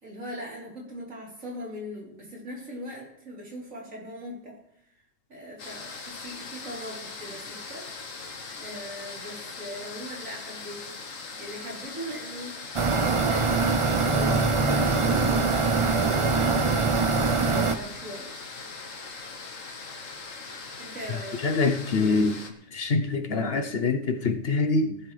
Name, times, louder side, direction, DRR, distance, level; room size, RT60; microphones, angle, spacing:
voice 1, 0.0-4.6 5.3-7.9 8.6-12.6 12.9-13.7 14.1-16.7 17.4-18.3 20.8-21.4, equal, 85° right, -3 dB, 4.1 m, -40 dB
sound 1, 5.6-22.5, left 4 dB, 75° left, 1.6 m, -40 dB
sound 2, 12.7-17.7, right 4 dB, 30° right, 0.6 m, -23 dB
voice 2, 21.4-22.5 22.7-25.0, left 3 dB, 55° left, 7 dB, 1.0 m, -25 dB
18.5 x 12.0 x 3.3 m, 0.75 s
omnidirectional pair, 1.4 m